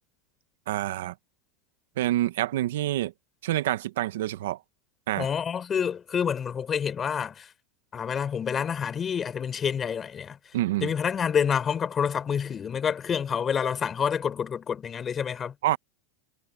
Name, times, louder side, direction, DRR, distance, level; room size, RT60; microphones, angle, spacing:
voice 1, 0.7-1.1 2.0-3.1 3.4-4.6 5.1-5.3 10.5-10.9 15.6-15.8, right 14 dB, 80° right, 1.0 m, -27 dB
voice 2, 5.2-7.5 7.9-10.4 10.8-15.5, left 7 dB, 20° left, 4.6 m, -28 dB
supercardioid pair, 150°, 0 cm